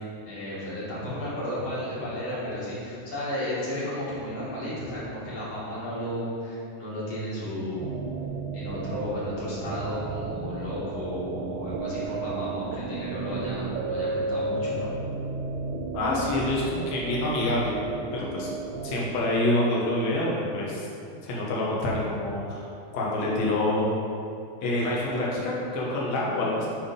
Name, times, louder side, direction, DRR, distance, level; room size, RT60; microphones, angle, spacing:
voice 1, 0.3-7.9 8.5-14.9, equal, 45° left, -9 dB, 2.6 m, -33 dB
sound 1, 7.8-19.0, right 3 dB, 85° right, 2.1 m, -33 dB
voice 2, 15.9-17.8 18.1-18.5 18.8-20.9 21.2-22.7 22.9-23.9 24.6-26.7, left 1 dB, 70° left, -5 dB, 2.4 m, -26 dB
8.7 x 3.6 x 5.2 m, 2.5 s
omnidirectional pair, 3.4 m